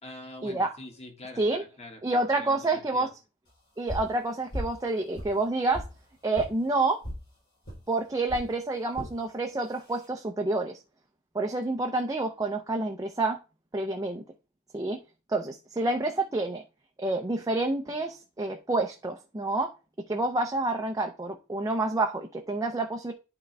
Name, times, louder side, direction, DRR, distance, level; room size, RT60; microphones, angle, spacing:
voice 1, 0.0-3.1, left 1 dB, 30° left, 3 dB, 1.6 m, -45 dB
voice 2, 2.0-3.1 3.8-5.8 6.2-7.0 7.9-10.8 11.3-13.4 13.7-14.2 14.7-15.0 15.3-16.6 17.0-19.7 20.1-23.1, right 2 dB, 15° right, 3 dB, 0.6 m, -28 dB
sound 1, 3.9-4.2 4.5-4.8 5.1-5.9 6.3-6.5 7.0-7.2 7.7-7.8 8.3-8.5 8.9-9.1 9.7-10.1, equal, 50° left, 3.7 m, -36 dB
11.0 x 3.8 x 3.3 m, 0.31 s
head